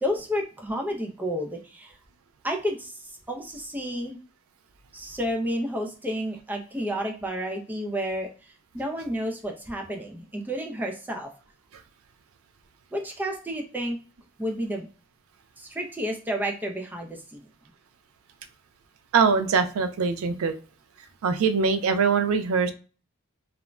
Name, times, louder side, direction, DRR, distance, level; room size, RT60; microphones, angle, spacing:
voice 1, 0.0-2.0 2.4-4.2 4.9-11.3 12.9-14.0 14.4-14.9 15.6-17.5, equal, 10° right, 2 dB, 0.4 m, -31 dB
voice 2, 19.1-20.5 21.2-22.7, right 5 dB, 90° right, 9 dB, 0.4 m, -22 dB
2.4 x 2.1 x 3.1 m, 0.37 s
head